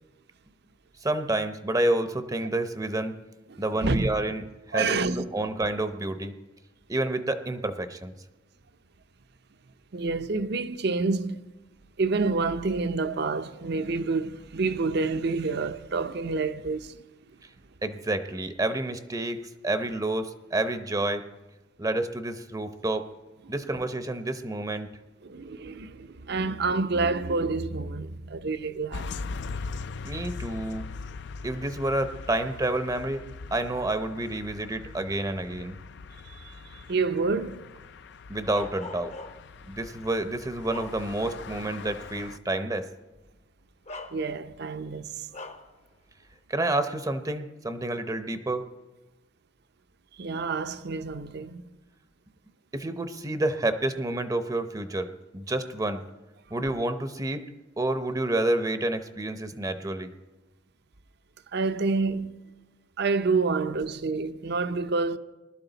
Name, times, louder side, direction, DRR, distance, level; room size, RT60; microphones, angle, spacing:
voice 1, 1.0-3.2 3.6-6.4 6.9-8.1 17.8-21.2 21.8-23.1 23.5-24.9 30.0-30.9 31.4-33.2 33.5-35.8 38.3-39.2 39.7-42.9 46.5-48.6 52.7-55.1 55.3-56.0 56.5-57.5 57.8-60.1, right 2 dB, 20° right, 0.7 m, -29 dB
voice 2, 3.5-4.1 4.7-5.2 9.9-11.4 12.0-17.0 25.2-29.1 36.4-37.6 44.1-45.1 50.2-51.6 61.5-62.3 63.0-65.2, right 3 dB, 60° right, 0.7 m, -28 dB
sound 1, 28.9-42.4, left 4 dB, 65° left, 0.4 m, -41 dB
Bark, 38.5-39.6 40.2-41.4 41.9-42.0 43.2-43.3 43.9-44.6 45.3-45.8, left 3 dB, 35° left, 0.7 m, -43 dB
20.0 x 12.5 x 4.0 m
head